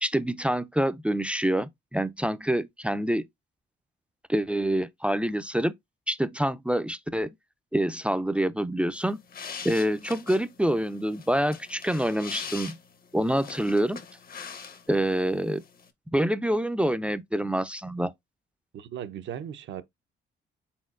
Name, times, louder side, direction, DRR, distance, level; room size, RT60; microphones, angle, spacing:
voice 1, 0.0-3.3 4.3-5.7 6.1-7.3 7.7-9.2 9.6-12.7 13.1-14.0 14.9-15.6 16.1-18.1, right 1 dB, 5° right, 0.4 m, -26 dB
sound 1, 9.0-15.1 15.4-15.9, left 6 dB, 50° left, 0.8 m, -42 dB
voice 2, 18.7-19.8, right 9 dB, 70° right, 0.6 m, -37 dB
4.3 x 3.8 x 2.4 m
cardioid pair, 90°, 20 cm